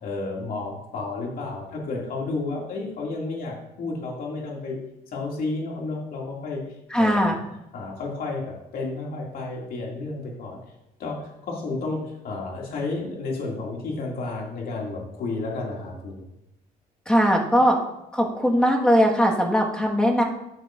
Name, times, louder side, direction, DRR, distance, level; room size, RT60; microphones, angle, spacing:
voice 1, 0.0-4.8 5.1-6.6 7.0-7.3 7.7-10.6 11.0-16.2, left 3 dB, 60° left, -2 dB, 2.4 m, -31 dB
voice 2, 6.9-7.4 17.1-17.8 18.1-20.2, equal, 5° left, 0 dB, 1.6 m, -20 dB
13.5 x 6.4 x 2.6 m, 0.86 s
cardioid pair, 110°, 17 cm